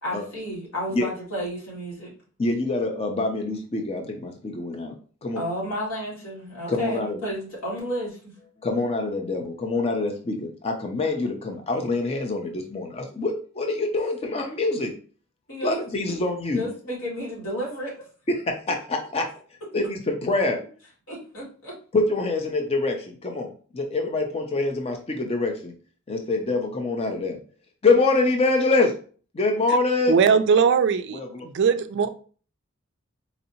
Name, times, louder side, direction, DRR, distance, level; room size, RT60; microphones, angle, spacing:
voice 1, 0.0-2.1 5.3-8.2 15.5-15.8 16.5-18.0 21.1-21.7, equal, 65° left, -5 dB, 1.9 m, -32 dB
voice 2, 2.4-4.9 5.2-5.4 6.7-7.2 8.6-14.9 15.6-16.7 18.3-18.4 18.7-19.2 19.7-20.6 21.9-23.0 23.2-23.5 23.7-25.7 26.1-27.4 27.8-28.9 29.4-30.2 31.1-31.5, left 3 dB, 30° left, 3 dB, 0.5 m, -25 dB
voice 3, 30.1-32.1, right 6 dB, 55° right, 11 dB, 0.3 m, -20 dB
4.1 x 2.7 x 2.7 m, 0.40 s
head